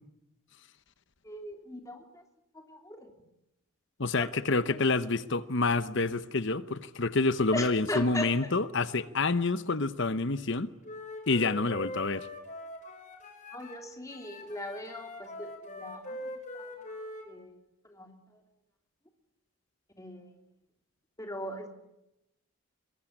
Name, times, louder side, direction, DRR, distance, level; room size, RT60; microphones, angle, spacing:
voice 1, 1.2-2.2 2.7-3.1 4.2-4.3 7.5-8.5 13.5-17.5 17.8-18.1 20.0-20.3 21.2-21.7, left 1 dB, 15° left, 3.1 m, -39 dB
voice 2, 4.0-10.7 11.3-12.3, left 3 dB, 55° left, 1.0 m, -28 dB
Wind instrument woodwind instrument, 10.8-13.8 14.1-17.3, left 2 dB, 35° left, 5.4 m, -43 dB
24.0 x 22.0 x 9.9 m
head